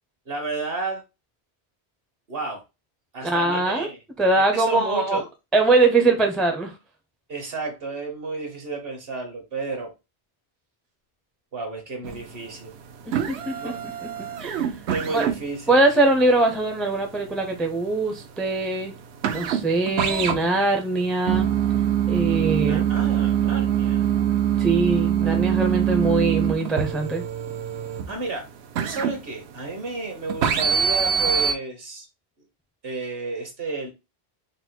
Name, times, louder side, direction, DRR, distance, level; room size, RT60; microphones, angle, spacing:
voice 1, 0.3-1.0 2.3-2.6 3.1-4.0 4.5-5.2 7.3-9.9 11.5-12.7 13.5-13.8 14.9-15.8 22.6-24.1 28.1-28.5 28.8-32.1 32.8-33.9, right 3 dB, 60° right, 1.4 m, -32 dB
voice 2, 3.2-3.9 4.2-5.2 5.5-6.7 13.1-14.1 14.4-14.7 15.1-15.2 15.7-18.9 19.3-21.5 22.1-22.8 24.6-27.2, right 2 dB, ahead, 0.4 m, -22 dB
sound 1, 12.0-12.5 12.8-29.9 30.3-31.5, right 9 dB, 80° right, 0.9 m, -24 dB
4.0 x 2.1 x 4.4 m
omnidirectional pair, 1.1 m